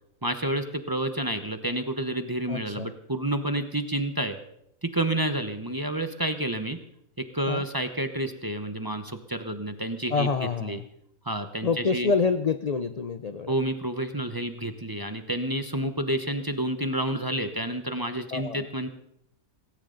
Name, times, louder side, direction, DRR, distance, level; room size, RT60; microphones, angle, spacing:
voice 1, 0.2-4.4 4.8-6.8 7.2-10.3 10.6-10.8 11.2-12.1 13.5-18.9, right 1 dB, 20° right, 8 dB, 0.8 m, -29 dB
voice 2, 2.5-2.9 7.5-7.6 10.1-10.8 11.6-13.5 18.3-18.7, left 5 dB, 55° left, 10 dB, 0.4 m, -27 dB
18.0 x 17.5 x 3.9 m, 0.76 s
omnidirectional pair, 1.5 m